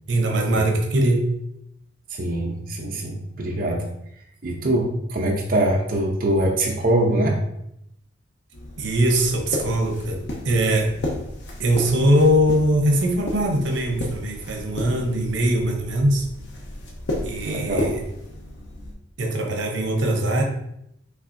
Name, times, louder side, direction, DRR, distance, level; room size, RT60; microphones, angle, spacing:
voice 1, 0.1-1.3 8.8-10.9 11.6-16.3 17.2-18.0 19.2-20.4, right 1 dB, 80° right, 2 dB, 0.8 m, -21 dB
voice 2, 2.2-3.9 4.4-7.4 17.4-17.9, right 1 dB, 50° right, -1 dB, 0.7 m, -23 dB
sound 1, 8.5-18.9, left 1 dB, 70° left, 0.9 m, -33 dB
5.9 x 3.4 x 2.6 m, 0.78 s
head